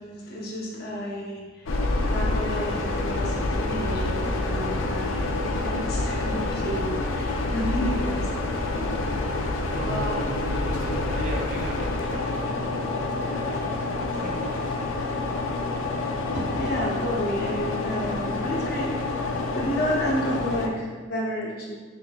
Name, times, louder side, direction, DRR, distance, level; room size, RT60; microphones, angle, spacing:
voice 1, 0.0-1.8 2.0-8.2 8.7-9.5 9.8-10.2 16.3-21.7, equal, 50° left, -3 dB, 0.9 m, -31 dB
sound 1, 1.7-20.7, left 2 dB, 90° left, 0.5 m, -27 dB
voice 2, 9.4-15.0, right 1 dB, 40° right, -2 dB, 0.6 m, -37 dB
5.8 x 3.2 x 2.3 m, 1.4 s
head